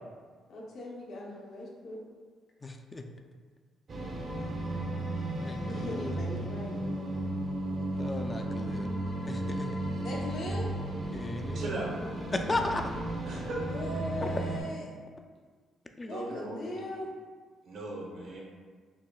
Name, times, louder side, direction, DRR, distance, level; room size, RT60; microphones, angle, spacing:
voice 1, 0.5-2.0 5.7-6.8 10.0-10.7 13.6-14.9 16.1-17.1, left 1 dB, 70° left, -3 dB, 0.7 m, -39 dB
voice 2, 2.6-3.0 5.4-6.2 7.9-8.9 9.3-9.7 11.1-11.7 12.3-12.8 14.2-14.3 16.0-16.1, left 2 dB, 25° left, 4 dB, 0.3 m, -35 dB
sound 1, 3.9-14.6, right 1 dB, 50° right, 0.7 m, -34 dB
voice 3, 11.5-11.9 13.2-13.6 14.2-14.3 16.1-16.5 17.6-18.4, right 2 dB, 70° right, -3 dB, 0.9 m, -38 dB
5.8 x 2.2 x 2.2 m, 1.5 s
cardioid pair, 90°, 0 cm